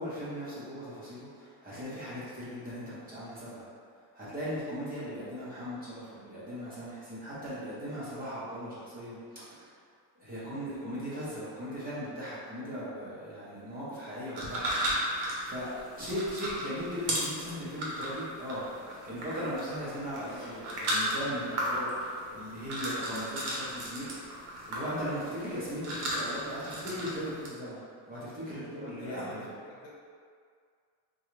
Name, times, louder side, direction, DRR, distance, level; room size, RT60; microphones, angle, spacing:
voice 1, 0.0-3.7 4.1-9.7 10.2-18.6 19.1-24.1 24.7-27.8 28.1-29.4, equal, 20° right, -10 dB, 0.7 m, -38 dB
sound 1, 14.3-27.5, right 1 dB, 75° right, 1.0 m, -35 dB
voice 2, 28.7-29.9, left 1 dB, 70° left, -5 dB, 1.0 m, -45 dB
3.7 x 2.3 x 3.0 m, 2.1 s
cardioid pair, 175°, 44 cm